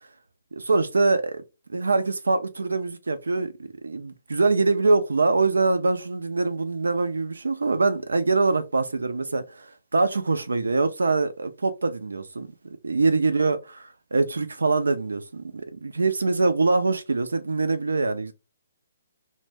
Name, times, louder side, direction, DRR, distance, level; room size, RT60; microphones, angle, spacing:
voice 1, 0.5-1.4 1.7-3.5 3.8-12.5 12.8-18.3, right 3 dB, 80° right, 0.4 m, -24 dB
2.5 x 2.1 x 3.2 m
figure-of-eight pair, 135°, 0 cm